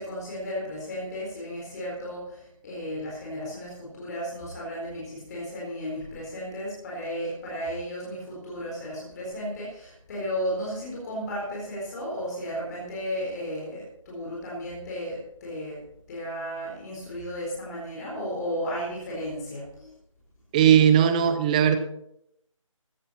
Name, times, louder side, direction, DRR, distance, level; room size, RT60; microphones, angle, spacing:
voice 1, 0.0-15.8 16.1-19.9, equal, 30° left, -4 dB, 4.2 m, -34 dB
voice 2, 20.5-21.8, right 9 dB, 15° right, 9 dB, 0.7 m, -18 dB
15.5 x 11.0 x 4.3 m, 0.75 s
figure-of-eight pair, 155°, 17 cm